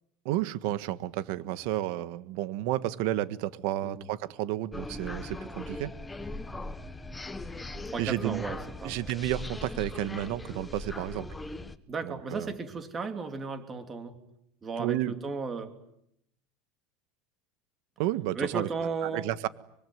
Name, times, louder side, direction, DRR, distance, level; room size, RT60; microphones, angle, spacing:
voice 1, 0.2-5.9 8.0-8.4 8.8-11.3 12.0-12.5 14.8-15.1 18.0-18.7 19.0-19.5, right 14 dB, 65° right, 14 dB, 1.5 m, -31 dB
sound 1, 4.7-11.8, left 2 dB, 10° left, 1.3 m, -40 dB
voice 2, 7.9-9.1 11.9-14.2 14.6-15.7 18.3-19.3, right 4 dB, 20° right, 7 dB, 3.2 m, -35 dB
25.0 x 24.0 x 9.5 m, 0.77 s
supercardioid pair, 145°, 0 cm